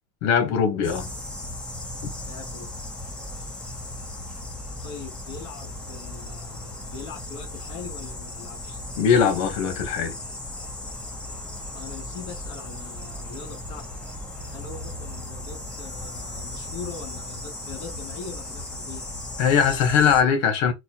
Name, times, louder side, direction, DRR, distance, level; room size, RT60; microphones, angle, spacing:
voice 1, 0.2-1.1 9.0-10.1 19.4-20.7, left 7 dB, 60° left, 1.0 m, -20 dB
sound 1, 0.8-20.2, left 1 dB, 5° left, 0.7 m, -36 dB
voice 2, 2.2-2.7 4.8-8.8 11.7-13.9 14.5-19.1, left 5 dB, 45° left, 1.8 m, -41 dB
4.2 x 2.2 x 2.8 m
cardioid pair, 175°, 16 cm